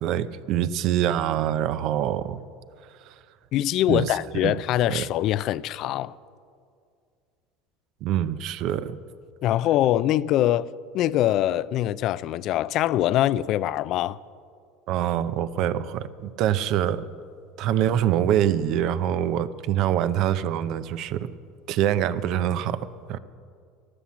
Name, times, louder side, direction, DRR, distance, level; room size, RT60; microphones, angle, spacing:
voice 1, 0.0-2.4 3.1-3.2 3.9-4.5 4.9-5.1 8.0-9.0 14.9-17.0 17.6-21.3 21.7-23.2, right 10 dB, 60° right, 0.6 m, -25 dB
voice 2, 3.5-6.1 9.4-14.2, left 13 dB, 55° left, 0.4 m, -23 dB
13.0 x 11.5 x 7.3 m
supercardioid pair, 100°, 0 cm